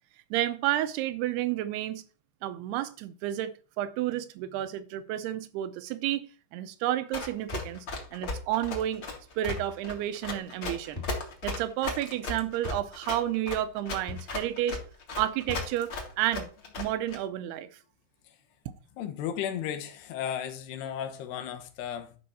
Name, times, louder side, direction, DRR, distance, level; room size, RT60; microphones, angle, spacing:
voice 1, 0.3-2.0 2.4-7.9 8.1-9.0 9.4-11.0 11.4-14.8 15.2-15.9 16.2-16.5 16.8-17.7, right 13 dB, 85° right, 2.8 m, -31 dB
Run, 7.1-17.2, left 3 dB, 40° left, 1.7 m, -36 dB
sound 1, 7.5-7.7 9.5-9.7 11.0-11.2 12.6-12.9 14.1-14.3 15.5-15.8, left 4 dB, 20° left, 1.3 m, -39 dB
voice 2, 19.0-22.2, left 9 dB, 90° left, 3.1 m, -35 dB
12.0 x 5.5 x 4.2 m
omnidirectional pair, 4.6 m